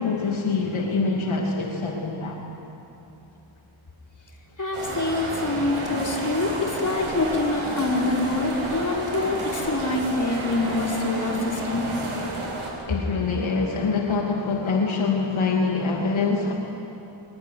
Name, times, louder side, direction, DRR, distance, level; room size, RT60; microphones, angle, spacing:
voice 1, 0.0-2.4 12.9-16.5, left 4 dB, 75° left, 0 dB, 2.8 m, -25 dB
voice 2, 4.6-11.9, left 2 dB, 40° left, -1 dB, 4.9 m, -25 dB
sound 1, 4.7-12.7, right 2 dB, 80° right, 7.8 m, -31 dB
25.0 x 22.0 x 9.6 m, 2.9 s
wide cardioid pair, 100°, 48 cm